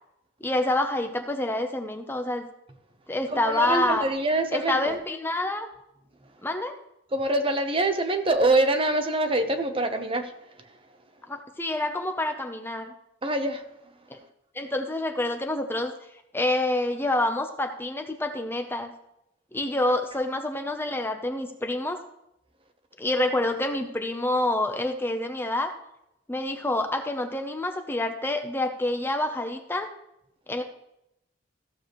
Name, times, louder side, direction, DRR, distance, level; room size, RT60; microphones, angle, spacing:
voice 1, 0.4-2.5 3.1-4.1 4.5-5.7 6.4-6.7 11.3-12.9 14.1-14.2 14.5-15.9 16.3-18.9 19.5-22.0 23.0-25.7 26.3-29.9 30.5-30.6, left 1 dB, 10° left, 5 dB, 0.7 m, -27 dB
voice 2, 3.3-5.0 7.1-10.3 13.2-13.6, right 2 dB, 30° right, 7 dB, 0.9 m, -25 dB
14.5 x 7.0 x 3.0 m, 0.82 s
head